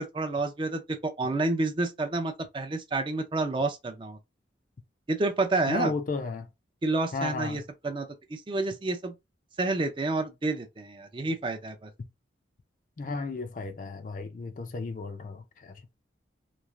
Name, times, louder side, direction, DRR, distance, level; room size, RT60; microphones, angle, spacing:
voice 1, 0.0-4.2 5.1-5.9 6.8-9.1 9.6-11.9, right 2 dB, 25° right, 0.4 m, -29 dB
voice 2, 5.7-6.5 7.1-7.6 13.0-15.8, left 3 dB, 45° left, 0.4 m, -34 dB
3.1 x 2.4 x 2.4 m
head